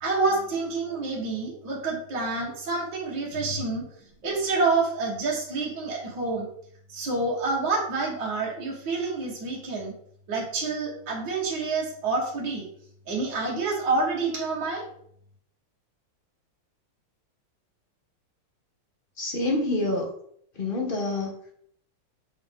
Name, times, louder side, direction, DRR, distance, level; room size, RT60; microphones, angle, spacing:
voice 1, 0.0-3.8 4.2-6.5 6.9-9.9 10.3-12.6 13.1-14.8, right 3 dB, 55° right, -5 dB, 2.3 m, -28 dB
voice 2, 19.2-20.1 20.6-21.3, left 2 dB, 40° left, 1 dB, 0.8 m, -27 dB
8.0 x 3.8 x 3.6 m, 0.66 s
omnidirectional pair, 2.4 m